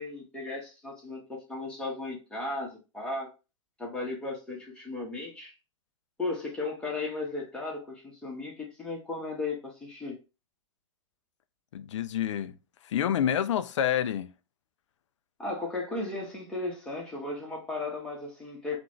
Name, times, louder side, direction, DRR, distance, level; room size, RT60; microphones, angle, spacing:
voice 1, 0.0-3.3 3.8-5.5 6.2-10.1 15.4-18.8, left 2 dB, 5° left, 1.4 m, -35 dB
voice 2, 11.7-12.6 12.8-14.3, left 10 dB, 65° left, 0.4 m, -28 dB
3.8 x 2.5 x 3.1 m
hypercardioid pair, 115°, 17 cm